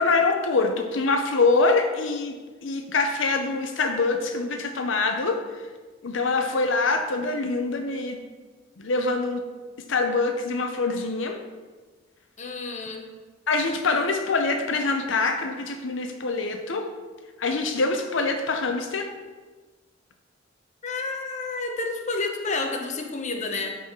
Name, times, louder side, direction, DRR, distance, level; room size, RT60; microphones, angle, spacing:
voice 1, 0.0-2.3 2.6-5.4 6.0-8.2 8.8-9.4 9.9-11.4 13.5-16.8 17.4-19.1, left 3 dB, 75° left, 5 dB, 0.7 m, -24 dB
voice 2, 12.4-13.1 20.8-23.7, left 3 dB, 40° left, 3 dB, 0.9 m, -30 dB
12.0 x 4.1 x 4.3 m, 1.4 s
head